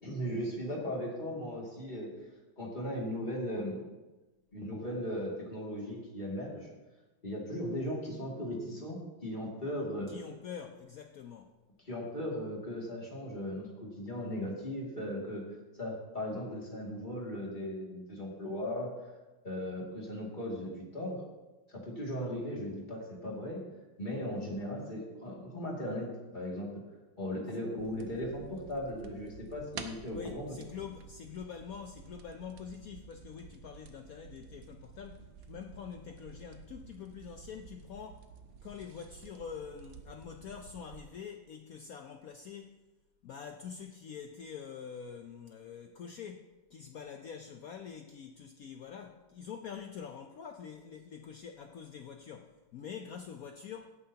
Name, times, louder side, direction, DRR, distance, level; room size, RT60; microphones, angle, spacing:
voice 1, 0.0-2.1 2.6-4.0 4.5-6.7 7.2-10.1 11.9-15.4 15.8-18.9 19.4-21.2 21.7-23.6 24.0-26.8 27.2-30.6, equal, 25° left, -3 dB, 2.4 m, -37 dB
voice 2, 10.1-11.5 30.1-38.3 38.6-42.8 43.2-54.0, left 7 dB, 70° left, 5 dB, 0.8 m, -45 dB
sound 1, 27.8-41.0, right 7 dB, 75° right, 1.5 m, -51 dB
17.0 x 9.2 x 2.8 m, 1.1 s
omnidirectional pair, 2.2 m